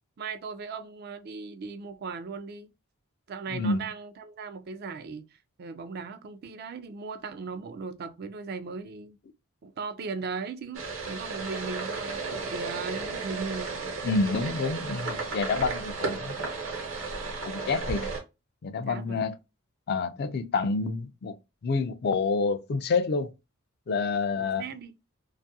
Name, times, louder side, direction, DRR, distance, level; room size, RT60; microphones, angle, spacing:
voice 1, 0.2-2.7 3.3-9.2 9.6-13.9 18.0-18.1 18.9-19.2 24.4-24.9, right 4 dB, 50° right, 0.4 m, -38 dB
voice 2, 3.5-3.8 14.0-16.5 17.5-18.1 18.6-19.4 19.9-21.3 21.6-23.3 23.9-24.6, left 4 dB, 50° left, 0.4 m, -28 dB
sound 1, 10.7-18.2, right 4 dB, 70° right, 0.9 m, -34 dB
2.6 x 2.4 x 2.7 m
head